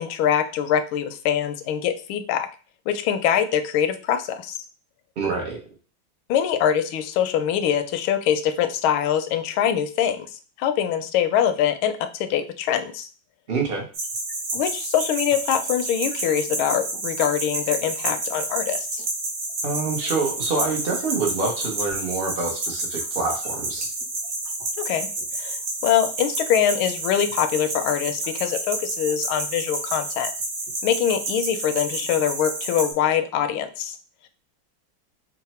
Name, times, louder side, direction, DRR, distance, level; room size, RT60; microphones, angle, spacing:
voice 1, 0.0-2.5 2.9-4.6 6.3-10.3 10.6-13.1 14.5-19.0 24.8-25.1 25.4-30.3 30.8-34.0, left 9 dB, 85° left, 9 dB, 1.4 m, -23 dB
voice 2, 5.2-5.6 13.5-13.9 19.6-23.9, right 4 dB, 90° right, 1 dB, 0.5 m, -26 dB
sound 1, 13.9-32.9, right 2 dB, 55° right, 1.2 m, -30 dB
3.8 x 2.1 x 4.1 m, 0.37 s
omnidirectional pair, 2.2 m